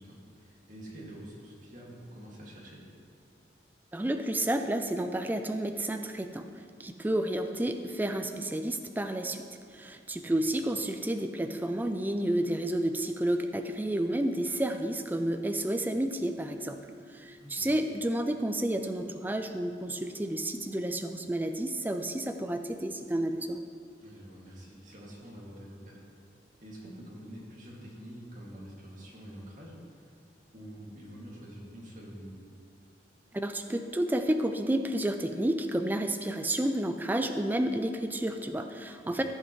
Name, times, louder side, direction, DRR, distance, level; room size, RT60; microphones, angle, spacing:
voice 1, 0.0-2.8 10.2-10.4 17.4-17.7 24.0-26.0 26.6-30.2 30.5-32.4 39.1-39.2, equal, 45° right, -4 dB, 2.2 m, -47 dB
voice 2, 3.9-6.5 6.8-9.4 9.7-16.8 17.1-23.6 33.3-39.2, right 1 dB, 10° right, 6 dB, 0.3 m, -30 dB
14.5 x 7.6 x 3.2 m, 2.4 s
head